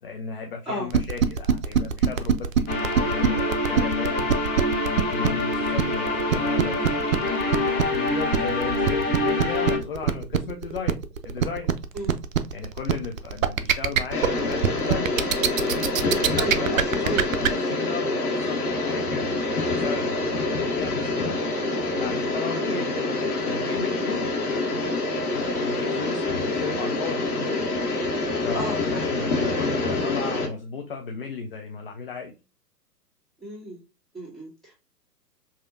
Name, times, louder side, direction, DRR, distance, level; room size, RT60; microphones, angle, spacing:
voice 1, 0.0-4.3 4.9-11.0 11.2-11.7 12.5-15.2 15.6-15.9 16.6-17.1 17.4-21.4 21.9-24.8 25.3-27.6 28.4-32.3, left 5 dB, 35° left, 3 dB, 0.5 m, -35 dB
sound 1, 0.9-17.5, right 8 dB, 55° right, 0.5 m, -22 dB
sound 2, 2.7-9.8, left 2 dB, 20° left, 1.2 m, -25 dB
sound 3, 14.1-30.5, left 2 dB, 65° left, 1.4 m, -26 dB
voice 2, 16.3-17.2 22.6-22.8 28.5-29.3 33.4-33.8 34.1-34.9, right 1 dB, ahead, -8 dB, 1.8 m, -33 dB
4.8 x 2.8 x 2.4 m, 0.30 s
figure-of-eight pair, 120°, 48 cm